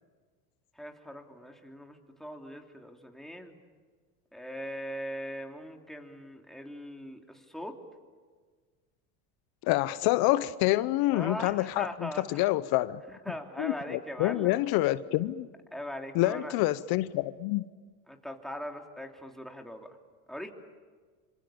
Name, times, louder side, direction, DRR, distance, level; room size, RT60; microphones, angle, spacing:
voice 1, 0.8-3.6 4.3-7.8 11.1-12.5 13.1-14.5 15.7-16.5 18.1-19.9 20.3-20.5, equal, ahead, 2 dB, 3.2 m, -40 dB
voice 2, 9.6-13.0 13.6-15.5 16.1-17.7, left 17 dB, 60° left, 16 dB, 0.9 m, -27 dB
27.0 x 25.5 x 7.2 m, 1.5 s
supercardioid pair, 100°, 41 cm